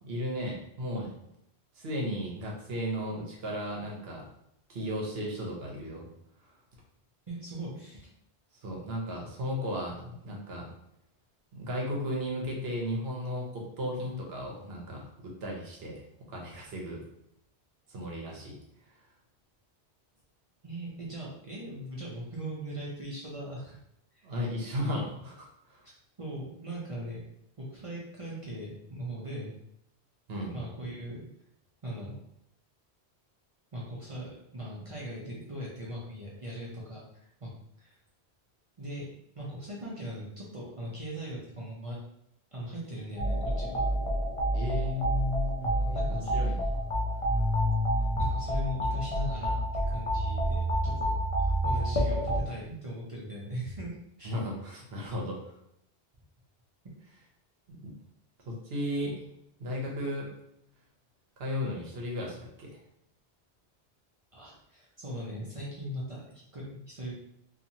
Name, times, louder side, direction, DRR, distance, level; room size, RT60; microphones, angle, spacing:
voice 1, 0.0-1.1 1.8-4.2 4.7-6.0 6.4-6.5 8.6-10.7 11.5-17.0 17.9-18.6 24.2-25.8 30.3-30.6 44.5-45.1 45.6-46.9 54.2-55.5 57.7-57.9 58.5-59.2 59.6-60.3 61.4-62.8, equal, 65° right, -1 dB, 1.0 m, -35 dB
voice 2, 7.3-8.1 20.6-23.8 24.1-24.3 26.2-27.3 27.6-29.5 30.5-31.3 31.8-32.2 33.7-37.5 37.8-38.0 38.8-39.1 39.3-42.0 42.5-43.9 45.9-46.3 48.2-49.6 49.9-51.1 51.4-54.3 64.3-67.1, equal, 40° right, -5 dB, 0.6 m, -39 dB
sound 1, 43.2-52.4, equal, 45° left, 0.4 m, -28 dB
2.9 x 2.4 x 2.6 m, 0.78 s
omnidirectional pair, 1.1 m